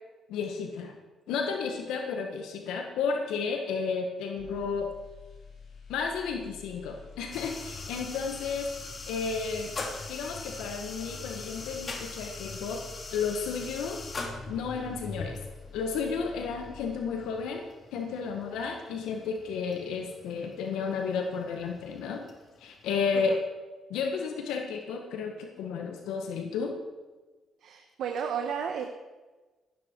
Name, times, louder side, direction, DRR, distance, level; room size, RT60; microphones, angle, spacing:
voice 1, 0.3-0.9 1.3-4.9 5.9-8.7 9.1-9.8 10.1-12.8 13.1-14.0 14.5-15.4 15.7-17.6 17.9-22.2 22.6-23.4 23.9-26.7, left 5 dB, 90° left, 3 dB, 1.6 m, -32 dB
sound 1, 4.4-17.5 17.8-18.0, left 5 dB, 55° left, 4.5 m, -49 dB
sound 2, 7.3-23.3, left 3 dB, 40° left, 2.6 m, -42 dB
voice 2, 27.6-28.8, right 7 dB, 75° right, 4 dB, 1.3 m, -33 dB
15.5 x 12.5 x 4.7 m, 1.2 s
cardioid pair, 90°, 0 cm